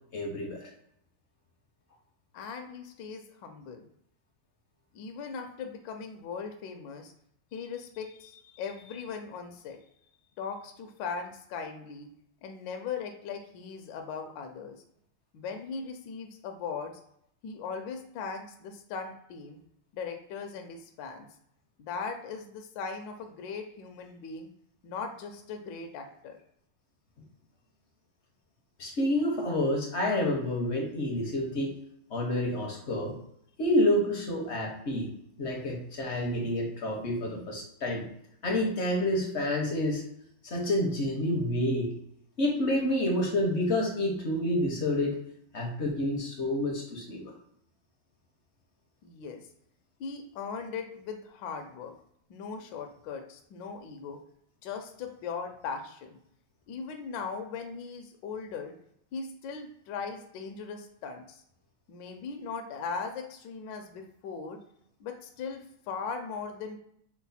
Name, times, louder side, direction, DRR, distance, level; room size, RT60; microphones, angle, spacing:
voice 1, 0.1-0.7 28.8-31.7 32.1-33.2 33.6-35.1 35.4-38.1 38.4-40.0 40.4-41.9 42.4-45.2 45.5-47.3, left 1 dB, 55° left, 0 dB, 0.7 m, -28 dB
voice 2, 2.3-3.9 4.9-7.1 7.5-9.8 10.4-12.1 12.4-14.8 15.3-17.0 17.4-19.6 19.9-21.3 21.8-24.5 24.8-26.4 49.0-49.4 50.0-51.9 52.3-54.2 54.6-56.2 56.7-58.7 59.1-61.4 61.9-64.6 65.0-66.8, left 5 dB, 70° left, 4 dB, 1.2 m, -39 dB
6.0 x 2.1 x 4.1 m, 0.71 s
omnidirectional pair, 2.3 m